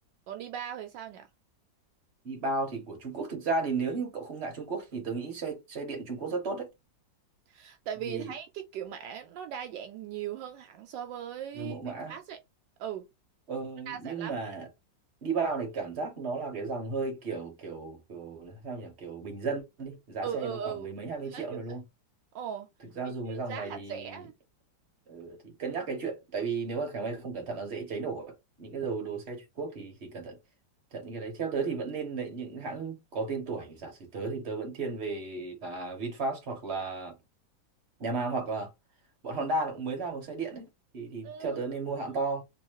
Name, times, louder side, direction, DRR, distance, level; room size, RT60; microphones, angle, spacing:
voice 1, 0.3-1.3 7.5-11.8 12.1-12.4 12.8-13.1 13.9-14.3 20.2-21.8 22.3-22.7 23.0-24.3 41.2-41.6, right 9 dB, 75° right, 1.2 m, -39 dB
voice 2, 2.2-6.7 8.1-8.3 11.5-12.1 13.5-14.7 15.2-21.8 22.9-24.2 25.1-30.4 30.9-37.2 38.0-38.7 39.2-40.7 40.9-42.4, right 4 dB, 40° right, 1.3 m, -34 dB
3.5 x 3.1 x 3.0 m
omnidirectional pair, 2.0 m